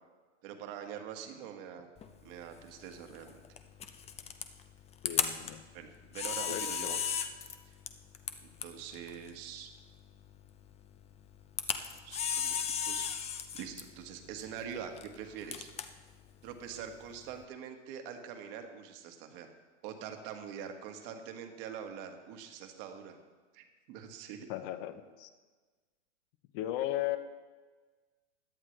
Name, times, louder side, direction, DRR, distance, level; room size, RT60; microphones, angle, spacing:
voice 1, 0.4-1.9 2.2-3.4 5.7-7.0 7.6-7.7 8.6-9.7 11.7-13.1 13.5-15.7 16.4-19.5 19.8-23.2 23.5-24.5, right 8 dB, 50° right, 5 dB, 1.8 m, -44 dB
Camera, 2.0-17.4, left 7 dB, 15° left, 0.7 m, -38 dB
voice 2, 5.0-5.6 6.4-7.0 24.5-25.3 26.5-27.2, left 13 dB, 45° left, 10 dB, 1.0 m, -36 dB
17.0 x 11.0 x 3.3 m, 1.4 s
hypercardioid pair, 130°, 37 cm